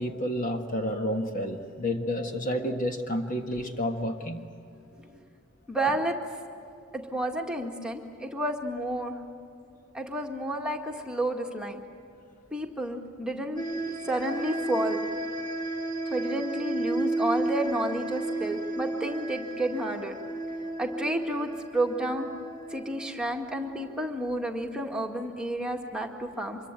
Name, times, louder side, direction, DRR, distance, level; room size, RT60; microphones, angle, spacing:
voice 1, 0.0-4.4, equal, 40° left, 4 dB, 1.5 m, -30 dB
voice 2, 5.7-6.2 6.9-9.1 9.9-11.8 12.5-15.0 16.1-20.2 20.8-22.3 22.7-26.6, right 1 dB, 5° right, 1 dB, 2.0 m, -31 dB
sound 1, 13.6-24.0, right 2 dB, 20° left, 2.8 m, -33 dB
25.5 x 23.0 x 8.9 m, 2.6 s
head